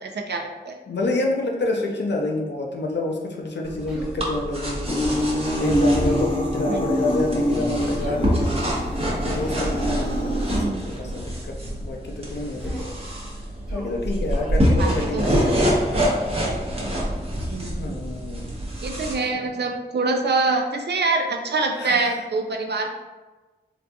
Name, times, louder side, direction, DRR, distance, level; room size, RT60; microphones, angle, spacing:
voice 1, 0.0-0.7 6.7-6.8 10.5-10.8 14.8-15.3 17.5-18.0 18.8-22.9, right 3 dB, 70° right, 3 dB, 0.4 m, -25 dB
voice 2, 0.9-5.1 5.6-8.7 9.2-12.9 13.7-15.6 17.7-18.6 19.3-19.5 21.7-22.2, left 2 dB, 75° left, 1 dB, 0.6 m, -28 dB
sound 1, 3.6-19.1, equal, 35° right, 0.8 m, -26 dB
Human voice, 3.9-4.1 5.0-5.4 6.0-6.3 8.0-8.2 9.4-9.7 10.9-11.2 12.6-13.0 13.7-14.0 14.3-14.6, equal, ahead, 1.0 m, -36 dB
sound 2, 4.9-10.7, equal, 30° left, 0.5 m, -25 dB
3.8 x 2.7 x 2.3 m, 1.2 s
wide cardioid pair, 85°, 18 cm